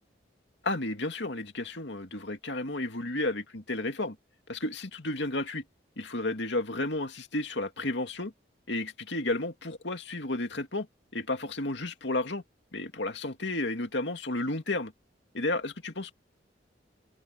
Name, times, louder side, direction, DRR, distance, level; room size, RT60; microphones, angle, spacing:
voice 1, 0.6-4.2 4.5-5.6 6.0-8.3 8.7-10.9 11.1-12.4 12.7-14.9 15.3-16.1, left 2 dB, 70° left, 2.3 m, -32 dB
open air
head